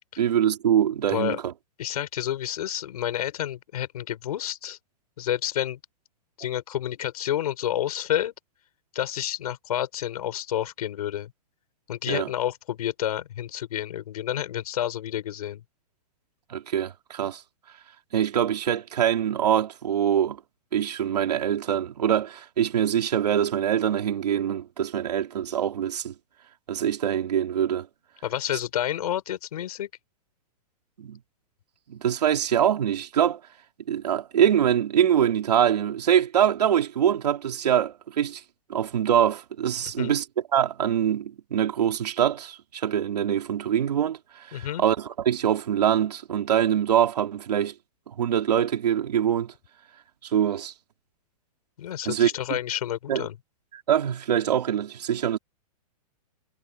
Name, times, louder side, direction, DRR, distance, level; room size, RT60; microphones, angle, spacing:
voice 1, 0.2-1.5 12.1-12.3 16.5-17.4 18.1-20.4 20.7-26.1 26.7-27.9 31.0-31.2 31.9-33.4 33.9-38.4 38.7-40.2 40.5-44.2 44.5-47.7 48.1-49.5 50.2-50.7 52.0-52.6 53.1-53.3 53.9-55.4, right 9 dB, 85° right, 3.3 m, -24 dB
voice 2, 1.1-1.4 1.8-4.8 5.2-5.8 6.4-8.3 8.9-11.3 11.9-15.6 28.2-29.9 39.8-40.1 44.5-44.8 51.8-53.4, left 11 dB, 70° left, 5.7 m, -29 dB
hypercardioid pair, 155°, 20 cm